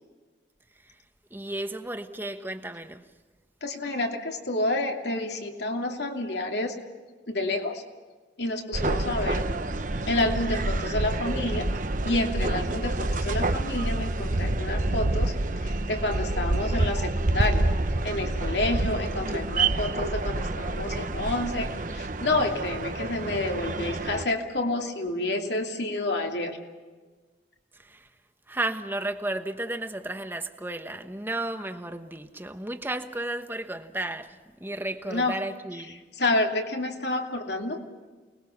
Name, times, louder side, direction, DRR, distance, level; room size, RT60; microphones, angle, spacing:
voice 1, 1.3-3.0 27.7-28.1 28.5-36.0, right 1 dB, 10° right, 1.2 m, -33 dB
voice 2, 3.6-6.8 7.3-7.8 8.4-9.5 10.1-11.7 12.0-15.3 15.6-17.6 18.0-26.6 35.1-35.4 36.1-37.8, left 2 dB, 70° left, 2.7 m, -29 dB
sound 1, 8.7-24.2, right 2 dB, 45° right, 1.0 m, -28 dB
29.0 x 21.0 x 6.0 m
head